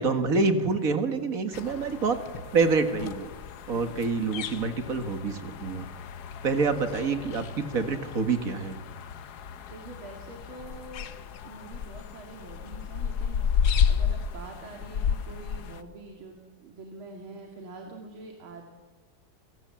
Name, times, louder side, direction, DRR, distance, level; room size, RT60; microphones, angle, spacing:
voice 1, 0.0-2.2 2.5-3.3 3.7-5.9 6.4-8.8, right 4 dB, 45° right, 7 dB, 1.9 m, -26 dB
sound 1, 1.5-15.8, left 7 dB, 60° left, 1.3 m, -32 dB
voice 2, 3.7-4.0 9.4-9.5 9.7-11.1 11.4-18.6, right 3 dB, 85° right, 2 dB, 2.9 m, -45 dB
29.0 x 17.5 x 7.5 m, 1.4 s
omnidirectional pair, 2.2 m